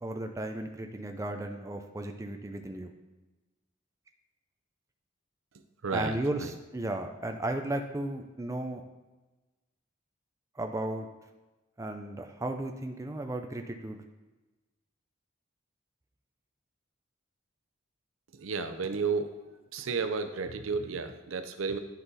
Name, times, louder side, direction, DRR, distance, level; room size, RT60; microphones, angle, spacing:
voice 1, 0.0-2.9 5.9-8.8 10.6-11.1 11.8-14.0, right 1 dB, 15° right, 5 dB, 0.4 m, -35 dB
voice 2, 5.8-6.5 18.3-19.3 19.7-21.8, right 5 dB, 80° right, 8 dB, 0.6 m, -32 dB
10.5 x 3.9 x 4.0 m, 1.1 s
head